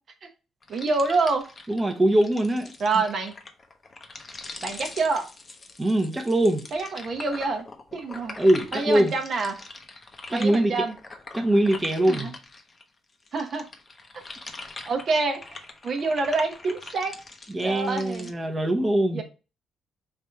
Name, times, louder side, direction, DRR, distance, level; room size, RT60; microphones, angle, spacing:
sound 1, 0.6-12.8 13.2-18.3, left 3 dB, 35° left, 0.7 m, -43 dB
voice 1, 0.7-1.5 2.8-3.3 4.6-5.3 6.7-7.7 7.9-8.4 8.7-9.6 10.3-10.9 12.1-12.3 13.3-13.7 14.9-15.6 15.8-17.2 17.6-18.3 19.1-19.2, right 3 dB, 55° right, 0.8 m, -26 dB
voice 2, 1.7-2.7 5.8-6.6 8.4-9.1 10.3-10.7 11.3-12.3 17.5-19.2, right 1 dB, 15° right, 0.7 m, -22 dB
3.4 x 2.6 x 4.2 m
cardioid pair, 90°, 0 cm